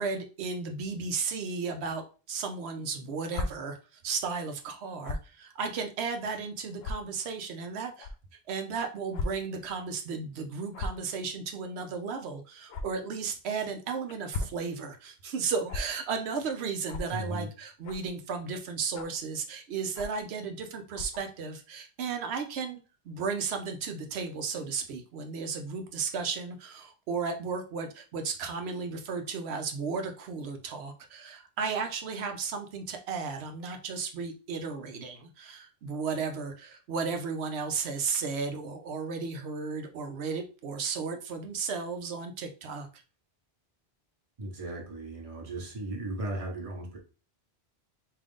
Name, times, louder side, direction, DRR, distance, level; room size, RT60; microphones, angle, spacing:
voice 1, 0.0-3.8 4.0-8.1 8.5-22.8 23.1-43.0, right 5 dB, 90° right, 5 dB, 0.9 m, -34 dB
sound 1, 3.3-3.5 5.0-5.3 6.0-6.1 6.8-6.9 8.0-8.1 9.1-9.3 9.6-9.7 10.7-11.0 12.7-12.8 14.1-14.6 15.7-15.8 16.9-17.1 17.8-18.1 18.9-19.2 19.9-20.2 20.9-21.2, left 3 dB, 75° left, 0.8 m, -35 dB
voice 2, 17.1-17.5 44.4-47.0, right 1 dB, 35° right, 1 dB, 1.0 m, -36 dB
3.7 x 2.6 x 3.5 m, 0.34 s
omnidirectional pair, 1.1 m